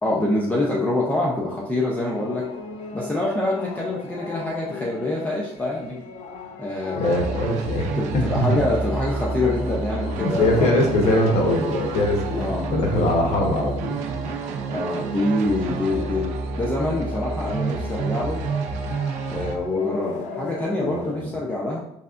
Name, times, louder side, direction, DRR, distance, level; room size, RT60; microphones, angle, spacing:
voice 1, 0.0-2.4 2.9-6.0 6.6-7.3 8.0-10.8 12.4-12.7 14.7-18.4 19.3-21.8, left 2 dB, 15° left, -4 dB, 0.6 m, -25 dB
sound 1, 2.1-21.2, left 4 dB, 90° left, 0.6 m, -39 dB
voice 2, 6.9-8.6 10.2-14.0 20.8-21.3, left 1 dB, 65° left, 0 dB, 1.1 m, -22 dB
sound 2, 7.0-19.6, right 4 dB, 85° right, 0.5 m, -29 dB
5.5 x 3.3 x 2.5 m, 0.75 s
cardioid pair, 135°, 12 cm